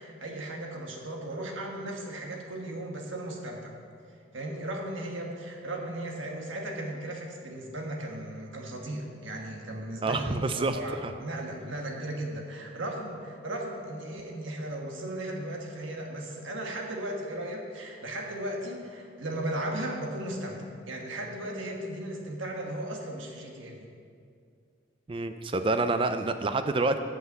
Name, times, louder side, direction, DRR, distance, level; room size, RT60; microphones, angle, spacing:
voice 1, 0.0-3.8 4.3-23.9, right 1 dB, 85° right, 1 dB, 1.4 m, -36 dB
voice 2, 10.0-11.1 25.1-27.0, right 3 dB, 25° right, 9 dB, 0.4 m, -28 dB
7.9 x 5.7 x 7.7 m, 2.3 s
head